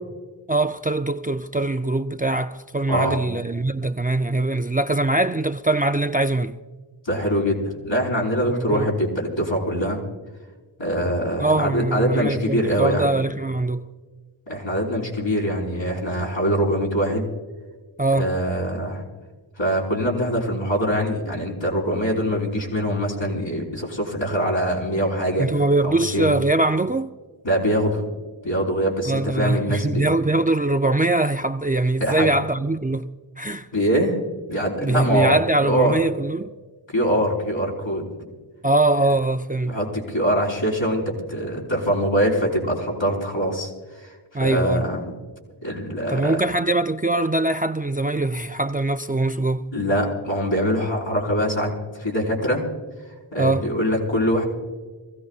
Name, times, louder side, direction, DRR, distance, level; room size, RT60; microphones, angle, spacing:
voice 1, 0.5-6.6 8.6-8.9 11.4-13.8 18.0-18.3 25.4-27.1 29.1-33.1 33.4-33.7 34.8-36.5 38.6-39.8 44.3-44.9 46.1-49.7 53.4-53.7, right 2 dB, 20° right, 0.4 m, -22 dB
voice 2, 2.9-3.2 7.0-10.0 10.8-13.1 14.5-17.3 18.1-19.1 19.6-25.5 25.8-26.3 27.4-28.1 28.4-30.0 32.0-32.3 33.7-34.2 34.5-35.9 36.9-38.1 39.6-41.0 41.3-43.7 43.9-44.1 44.4-45.0 45.6-46.4 49.7-51.7 52.0-52.6 53.3-54.5, equal, 70° left, 4.7 m, -23 dB
26.0 x 16.0 x 2.4 m
wide cardioid pair, 45°, 48 cm